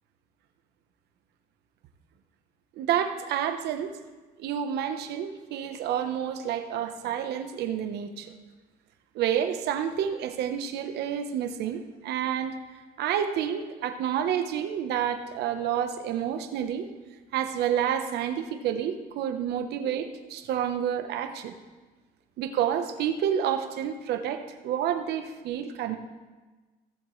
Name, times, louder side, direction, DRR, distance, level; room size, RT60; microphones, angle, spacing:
voice 1, 2.8-3.9 4.4-8.3 9.1-12.5 13.0-16.9 17.3-21.5 22.4-26.0, right 9 dB, 75° right, 8 dB, 1.0 m, -29 dB
16.5 x 7.5 x 3.2 m, 1.3 s
cardioid pair, 110°, 17 cm